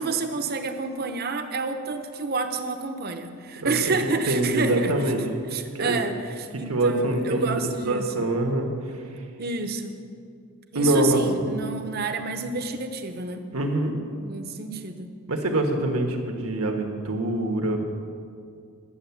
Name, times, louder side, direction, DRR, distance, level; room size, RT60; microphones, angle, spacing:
voice 1, 0.0-4.9 5.5-8.3 9.4-10.0 10.7-13.5 14.1-15.1, right 4 dB, 45° right, 7 dB, 0.8 m, -29 dB
voice 2, 3.6-5.2 5.7-6.0 6.7-7.5 7.8-8.7 10.7-11.2 13.5-13.9 15.3-17.8, right 1 dB, 80° right, 3 dB, 1.4 m, -24 dB
11.0 x 7.7 x 7.1 m, 2.3 s
head